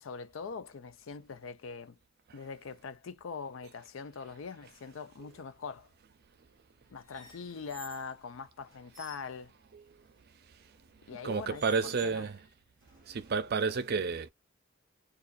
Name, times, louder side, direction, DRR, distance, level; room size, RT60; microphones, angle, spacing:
voice 1, 0.0-2.0 2.3-5.9 6.9-9.5 11.1-12.3, left 5 dB, 80° left, 0.4 m, -42 dB
sound 1, 7.1-8.1 8.7-9.3 10.6-10.8 11.5-12.4 12.8-13.7, right 3 dB, 20° left, 1.1 m, -52 dB
voice 2, 11.0-12.4 12.9-14.3, right 5 dB, 55° right, 0.5 m, -31 dB
2.6 x 2.4 x 2.2 m
head